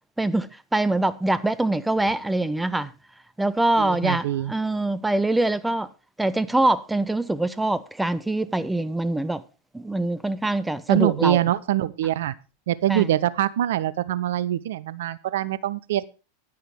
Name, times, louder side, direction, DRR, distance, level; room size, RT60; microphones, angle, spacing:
voice 1, 0.2-2.9 3.4-5.9 6.2-9.4 9.7-11.4 12.9-13.1, right 2 dB, 5° right, 0.5 m, -24 dB
voice 2, 3.8-4.5 10.9-12.3 12.7-16.0, right 12 dB, 55° right, 0.5 m, -24 dB
10.0 x 9.4 x 4.7 m
figure-of-eight pair, 90°, 0 cm